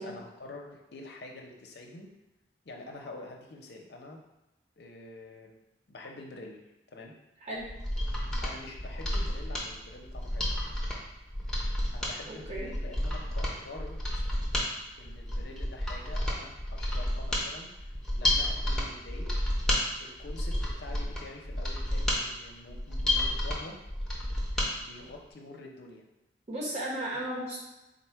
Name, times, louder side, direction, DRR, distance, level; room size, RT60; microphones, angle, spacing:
voice 1, 0.0-2.1 2.6-4.2 4.8-5.5 5.9-6.6 6.9-7.1 8.4-10.5 11.9-14.0 15.0-17.7 18.2-19.4 20.0-23.8 24.6-26.0, left 2 dB, 65° left, 1 dB, 0.6 m, -46 dB
Mechanisms, 7.6-24.7 25.0-25.1, left 1 dB, 5° left, 0.7 m, -31 dB
voice 2, 12.3-12.7 24.5-24.6 26.5-27.6, right 1 dB, 35° right, -5 dB, 1.0 m, -35 dB
3.9 x 2.2 x 4.4 m, 0.98 s
head